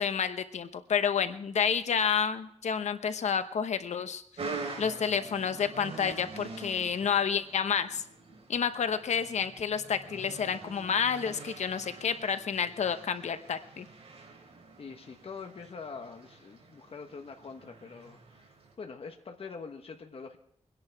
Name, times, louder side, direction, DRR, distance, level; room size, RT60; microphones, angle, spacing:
voice 1, 0.0-4.2 4.8-8.0 8.5-13.9, left 7 dB, 90° left, 10 dB, 0.9 m, -29 dB
sound 1, 4.4-18.7, right 3 dB, 60° right, 3.4 m, -45 dB
voice 2, 14.8-18.5 18.8-20.4, left 5 dB, 55° left, 4 dB, 1.3 m, -44 dB
23.5 x 10.5 x 4.6 m, 0.68 s
wide cardioid pair, 130°, 11 cm